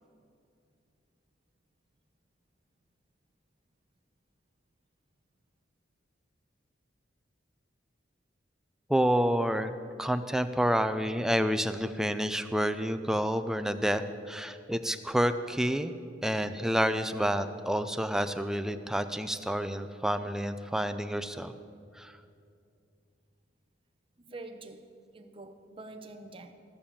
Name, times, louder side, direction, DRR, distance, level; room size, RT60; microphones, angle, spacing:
voice 1, 8.9-9.7 10.0-15.9 16.2-21.5 22.0-22.1, equal, 5° right, 10 dB, 0.4 m, -29 dB
voice 2, 24.2-26.5, right 2 dB, 30° right, 6 dB, 0.8 m, -46 dB
15.5 x 6.9 x 7.2 m, 2.5 s
head